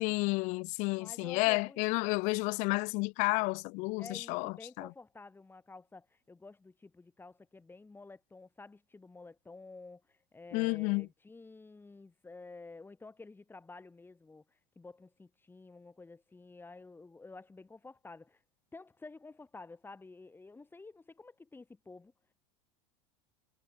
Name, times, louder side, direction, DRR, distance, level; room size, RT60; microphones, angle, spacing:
voice 1, 0.0-4.9 10.5-11.1, left 28 dB, 50° left, 0.4 m, -31 dB
voice 2, 1.0-2.3 4.0-18.4 18.7-22.1, left 3 dB, 15° left, 2.6 m, -51 dB
hypercardioid pair, 85°, 16 cm